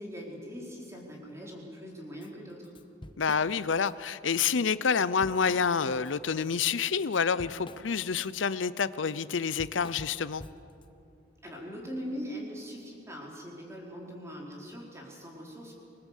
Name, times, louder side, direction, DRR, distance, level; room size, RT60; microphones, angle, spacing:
voice 1, 0.0-2.7 11.4-15.7, equal, 15° right, -2 dB, 4.5 m, -41 dB
Drum kit / Drum, 2.2-2.3 2.6-3.9 4.3-4.5 4.8-6.1 6.5-10.9, left 1 dB, 25° left, 1.0 m, -48 dB
voice 2, 3.2-10.4, left 6 dB, 85° left, 16 dB, 0.6 m, -28 dB
26.0 x 20.5 x 8.4 m, 2.6 s
head